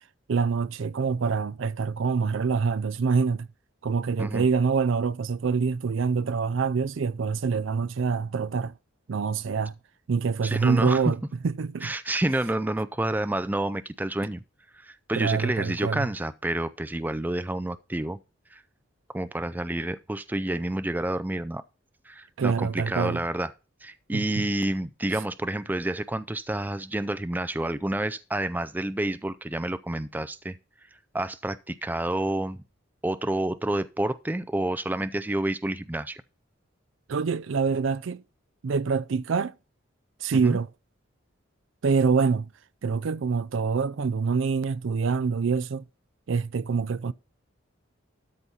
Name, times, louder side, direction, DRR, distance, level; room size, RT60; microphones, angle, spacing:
voice 1, 0.3-3.5 3.8-8.7 9.1-9.7 10.1-11.9 15.2-16.1 22.4-23.2 24.1-24.2 37.1-38.2 38.6-39.6 40.2-40.7 41.8-42.5 42.8-45.8 46.3-47.1, right 5 dB, 70° right, 0.4 m, -25 dB
voice 2, 10.4-11.0 11.8-14.4 14.7-18.2 18.5-18.6 19.1-21.6 22.1-23.5 23.8-30.6 31.1-32.6 33.0-36.2 40.3-40.6, right 1 dB, 10° right, 0.4 m, -29 dB
12.5 x 4.2 x 5.5 m
head